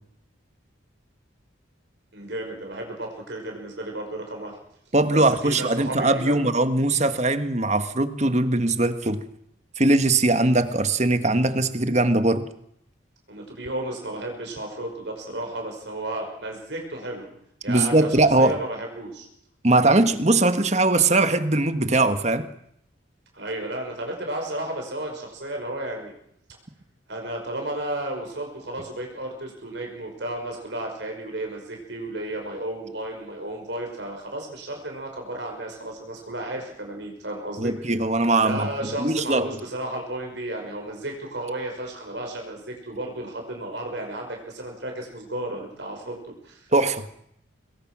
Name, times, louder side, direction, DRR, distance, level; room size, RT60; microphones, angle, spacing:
voice 1, 2.1-4.6 5.1-6.5 13.3-17.3 17.6-19.3 23.3-26.1 27.1-37.7 38.4-46.7, right 1 dB, 60° right, 2 dB, 5.6 m, -33 dB
voice 2, 4.9-9.2 9.8-12.4 17.7-18.5 19.6-22.4 37.6-38.7 39.0-39.5 46.7-47.0, right 2 dB, 35° right, 10 dB, 1.5 m, -20 dB
25.5 x 21.5 x 6.2 m, 0.73 s
head